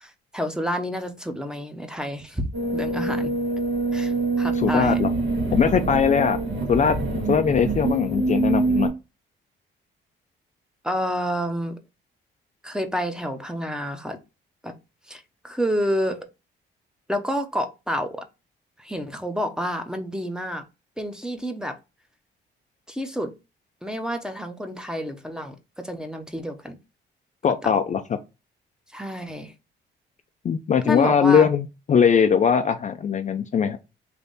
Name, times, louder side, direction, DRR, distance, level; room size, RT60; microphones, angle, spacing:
voice 1, 0.0-3.3 3.9-5.0 10.8-11.8 12.6-14.2 14.6-14.7 15.1-16.3 17.1-18.2 18.8-20.6 21.0-21.8 22.9-23.3 23.8-26.7 27.6-27.7 28.9-29.5 30.8-31.5, equal, 5° right, 0.7 m, -29 dB
sound 1, 2.5-8.9, right 3 dB, 75° right, 1.5 m, -25 dB
voice 2, 4.6-5.1 5.5-6.4 6.7-7.0 7.3-8.9 27.4-28.0 30.4-33.8, left 7 dB, 40° left, 0.4 m, -20 dB
3.4 x 2.6 x 3.9 m
cardioid pair, 90°, 20 cm